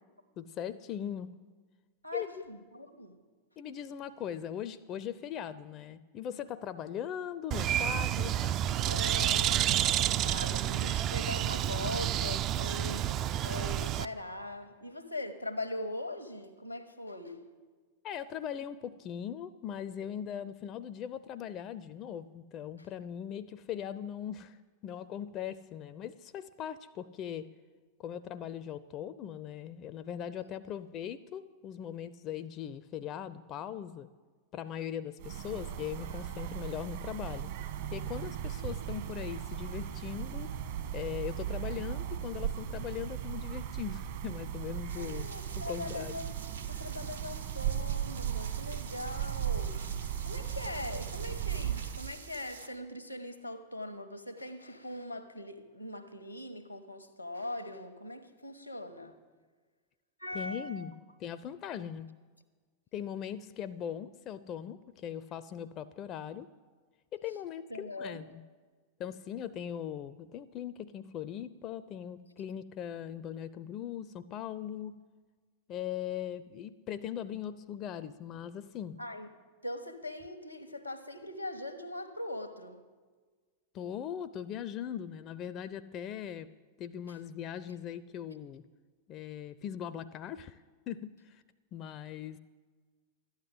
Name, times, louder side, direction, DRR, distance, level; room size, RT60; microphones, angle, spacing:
voice 1, 0.4-1.4 2.1-2.3 3.6-8.6 18.0-27.5 28.0-34.1 34.5-37.5 37.9-40.5 40.9-45.3 45.7-46.2 60.3-60.9 61.2-62.1 62.9-66.5 67.1-68.4 69.0-75.0 75.7-79.0 83.7-86.5 86.8-88.7 89.1-91.4 91.7-92.4, left 9 dB, 35° left, 0.4 m, -40 dB
voice 2, 2.0-3.2 8.8-17.5 45.0-46.4 46.7-50.0 50.2-59.2 60.2-60.9 67.7-68.2 79.0-79.3 79.6-82.8 87.1-87.2, left 1 dB, 90° left, 1.1 m, -41 dB
Bird, 7.5-14.1, right 11 dB, 35° right, 0.3 m, -29 dB
sound 1, 35.2-52.2, right 10 dB, 55° right, 1.3 m, -37 dB
sound 2, 44.9-52.7, right 5 dB, 75° right, 1.0 m, -49 dB
12.5 x 9.6 x 7.8 m
figure-of-eight pair, 90°, 0 cm